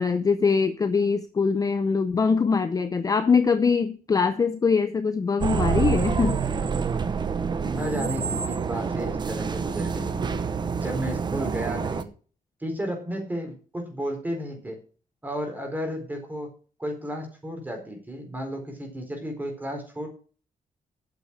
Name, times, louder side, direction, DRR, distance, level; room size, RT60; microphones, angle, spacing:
voice 1, 0.0-6.4, left 5 dB, 25° left, 10 dB, 0.6 m, -23 dB
sound 1, 5.4-12.0, right 6 dB, 30° right, 0.8 m, -27 dB
voice 2, 7.6-10.4 10.8-12.1 12.6-14.8 15.2-16.5 16.8-20.1, equal, 10° right, 3 dB, 4.2 m, -33 dB
8.9 x 6.9 x 8.7 m, 0.40 s
wide cardioid pair, 160°, 15 cm